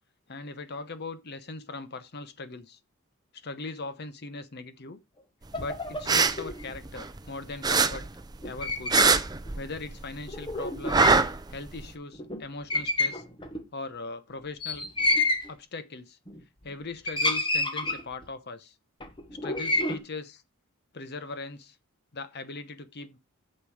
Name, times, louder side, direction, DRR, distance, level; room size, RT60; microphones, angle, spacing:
voice 1, 0.3-2.8 3.3-5.0 5.6-8.0 8.4-9.0 9.5-11.2 11.5-13.2 13.7-14.8 15.5-16.2 16.6-18.7 19.3-20.4 20.9-21.8 22.1-23.2, left 3 dB, 50° left, 0.9 m, -39 dB
sound 1, 5.5-6.7 8.4-9.2 9.5-9.6 10.3-11.3 11.8-11.9 12.1-12.4 12.7-13.6 14.6-15.5 16.3-16.7 17.0-18.2 19.0-20.0, left 2 dB, 20° left, 1.2 m, -29 dB
sound 2, 5.9-7.3 7.6-10.0 10.3-11.9, right 4 dB, 20° right, 0.6 m, -23 dB
8.9 x 6.7 x 4.8 m
head